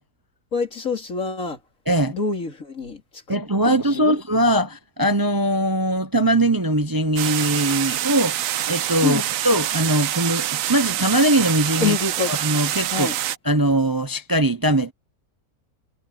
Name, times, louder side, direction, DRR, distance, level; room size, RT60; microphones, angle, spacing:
voice 1, 0.5-1.6 2.1-3.4 3.6-4.2 9.0-9.2 11.8-12.3 12.9-13.1, left 5 dB, 60° left, 3.2 m, -26 dB
voice 2, 3.3-8.4 8.7-12.0 12.3-13.1 13.4-14.9, right 1 dB, 25° right, 0.5 m, -21 dB
sound 1, 7.2-13.4, right 12 dB, 70° right, 1.0 m, -26 dB
omnidirectional pair, 1.6 m